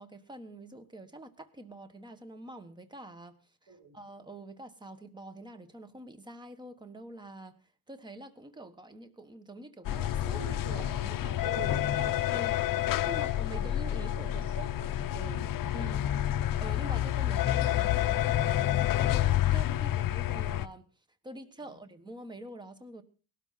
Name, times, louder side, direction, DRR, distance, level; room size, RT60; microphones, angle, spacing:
voice 1, 0.0-7.6 7.9-11.4 11.9-12.5 13.0-14.4 15.7-16.1 16.6-20.8 21.2-23.0, right 1 dB, 10° right, 10 dB, 1.2 m, -46 dB
sound 1, 9.8-20.7, left 12 dB, 50° left, 0.7 m, -29 dB
voice 2, 10.2-13.2 13.5-15.9 21.6-21.8, right 5 dB, 50° right, -2 dB, 6.5 m, -46 dB
18.0 x 12.5 x 4.0 m, 0.36 s
cardioid pair, 155°, 42 cm